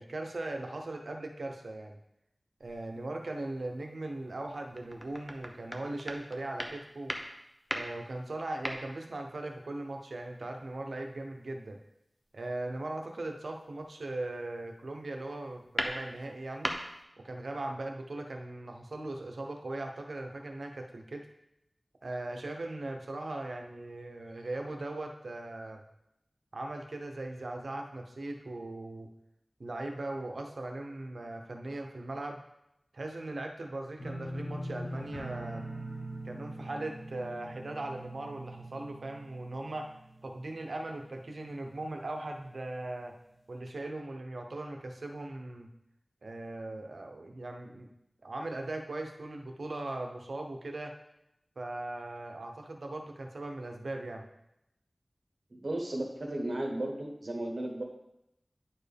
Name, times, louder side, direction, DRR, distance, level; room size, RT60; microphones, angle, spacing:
voice 1, 0.0-2.0 2.6-7.1 7.7-11.8 12.3-16.7 17.2-21.3 22.0-25.8 26.5-29.1 29.6-32.4 32.9-35.6 36.2-39.9 40.2-43.1 43.5-45.7 46.2-47.9 48.2-50.9 51.6-54.2, right 2 dB, 85° right, 3 dB, 0.8 m, -39 dB
sound 1, 2.6-3.1 3.6-3.7 4.3-9.3 9.8-10.3 12.2-12.4 13.5-13.8 14.2-14.8 15.2-17.0, equal, ahead, 0.8 m, -39 dB
sound 2, 34.0-40.9 41.2-41.7 42.1-42.2, right 1 dB, 65° left, 2.3 m, -42 dB
voice 2, 55.5-57.8, right 1 dB, 65° right, 1 dB, 1.3 m, -34 dB
10.0 x 4.5 x 3.4 m, 0.84 s
wide cardioid pair, 65°, 0 cm